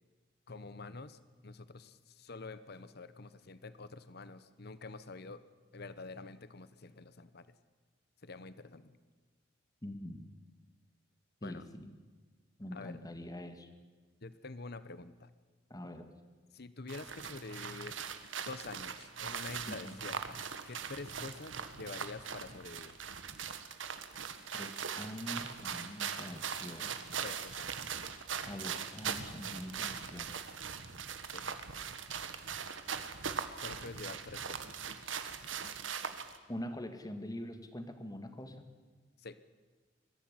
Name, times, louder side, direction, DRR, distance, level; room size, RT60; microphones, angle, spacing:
voice 1, 0.5-5.4 5.7-7.5 8.2-9.0 11.4-11.6 12.7-13.1 14.2-15.3 16.5-18.0 18.5-23.0 27.2-27.8 31.3-31.5 33.6-34.8 39.2-39.4, left 3 dB, 55° left, 14 dB, 1.1 m, -47 dB
voice 2, 9.8-10.3 11.4-11.9 12.6-13.7 15.7-16.1 19.7-20.0 24.5-27.3 28.4-30.4 36.5-38.8, equal, 20° left, 8 dB, 1.9 m, -44 dB
sound 1, 16.9-36.4, right 7 dB, 85° right, 1.6 m, -41 dB
22.5 x 15.0 x 9.8 m, 1.4 s
head